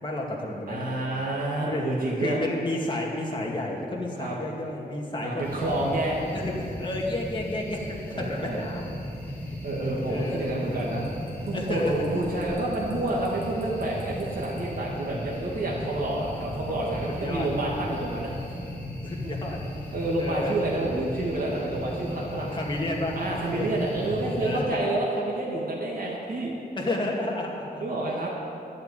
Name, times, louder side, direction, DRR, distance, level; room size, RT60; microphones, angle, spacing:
voice 1, 0.0-1.1 1.7-1.9 2.2-5.9 6.2-9.0 10.1-10.5 11.5-12.0 17.2-17.5 19.0-19.6 20.2-20.6 22.3-23.7 24.4-24.9 26.8-27.8, left 1 dB, 30° left, -2 dB, 2.3 m, -31 dB
voice 2, 0.7-2.4 4.2-4.4 5.2-6.2 8.1-8.6 9.6-11.0 11.5-18.3 19.9-22.6 23.1-26.5 27.8-28.3, right 2 dB, 60° right, -4 dB, 2.0 m, -29 dB
sound 1, 5.4-24.6, left 1 dB, 10° left, 3.3 m, -36 dB
12.5 x 7.9 x 9.3 m, 2.6 s
wide cardioid pair, 135°, 17 cm